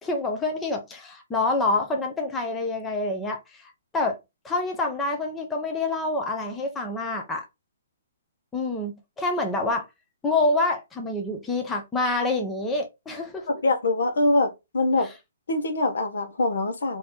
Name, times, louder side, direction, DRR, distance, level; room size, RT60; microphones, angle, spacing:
voice 1, 0.0-4.2 4.4-7.4 8.5-9.9 10.2-13.5 15.0-15.1, left 2 dB, 10° left, 0.5 m, -27 dB
voice 2, 13.5-15.1 15.5-17.0, left 2 dB, 80° left, 0.9 m, -24 dB
3.8 x 2.7 x 2.8 m
hypercardioid pair, 175°, 0 cm